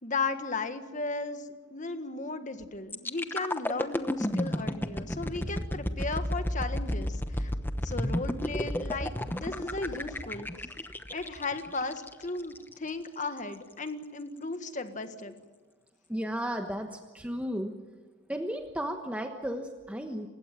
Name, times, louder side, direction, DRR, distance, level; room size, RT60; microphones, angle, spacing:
voice 1, 0.0-7.5 7.8-10.5 10.9-15.4, left 3 dB, 40° left, 8 dB, 1.6 m, -36 dB
sound 1, 2.9-12.7 13.2-13.4, left 1 dB, 10° left, 0.9 m, -32 dB
voice 2, 16.1-17.7 18.3-20.3, equal, 5° right, 4 dB, 1.2 m, -34 dB
29.0 x 16.0 x 9.3 m, 1.3 s
head